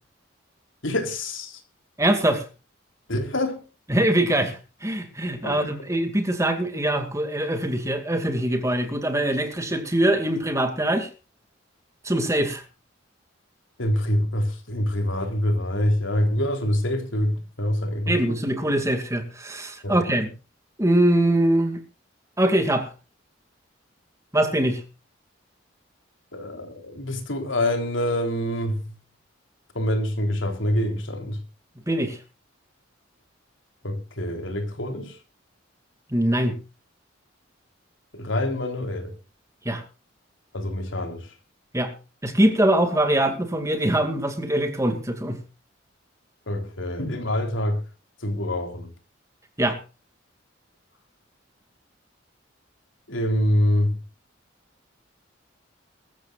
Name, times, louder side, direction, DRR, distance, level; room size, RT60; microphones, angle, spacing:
voice 1, 0.8-1.6 3.1-3.6 5.4-5.6 13.8-18.4 19.8-20.0 26.3-28.9 29.8-31.4 33.8-35.2 38.1-39.1 40.5-41.3 46.5-47.8 48.2-48.9 53.1-54.0, left 1 dB, 75° left, 3.7 m, -26 dB
voice 2, 2.0-2.5 3.9-11.1 12.0-12.6 18.1-20.3 20.8-21.8 22.4-22.9 24.3-24.8 31.9-32.2 36.1-36.6 39.6-39.8 41.7-41.9 42.2-45.4 49.6-49.8, right 1 dB, 15° right, 2.3 m, -23 dB
22.0 x 14.0 x 2.5 m
head